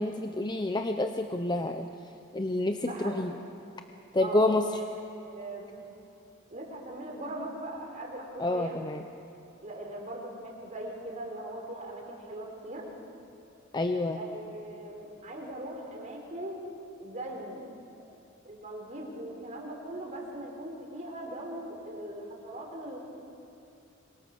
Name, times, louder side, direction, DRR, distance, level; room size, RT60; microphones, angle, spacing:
voice 1, 0.0-1.9 2.3-3.3 4.1-4.6 8.4-9.0 13.7-14.2, left 2 dB, 20° left, 6 dB, 0.8 m, -28 dB
voice 2, 2.8-3.2 4.2-5.8 6.5-8.8 9.6-12.9 14.1-16.6 17.0-17.7 18.4-23.0, right 1 dB, 35° right, -1 dB, 4.9 m, -40 dB
25.5 x 23.5 x 7.0 m, 2.8 s
head